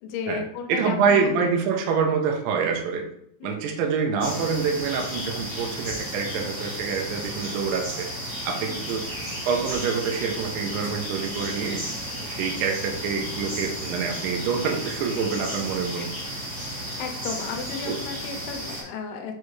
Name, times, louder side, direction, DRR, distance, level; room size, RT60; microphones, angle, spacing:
voice 1, 0.0-1.6 3.4-3.7 6.3-6.6 8.7-9.0 12.1-12.4 15.3-15.7 15.9-16.1 17.0-19.3, left 5 dB, 80° left, 3 dB, 2.6 m, -35 dB
voice 2, 0.7-3.1 3.4-8.1 8.5-9.1 9.5-11.9 12.3-16.1 17.9-18.0, right 5 dB, 90° right, 2 dB, 1.9 m, -26 dB
sound 1, 4.2-18.8, equal, 15° right, 1.8 m, -33 dB
6.6 x 4.6 x 3.2 m, 0.74 s
omnidirectional pair, 4.9 m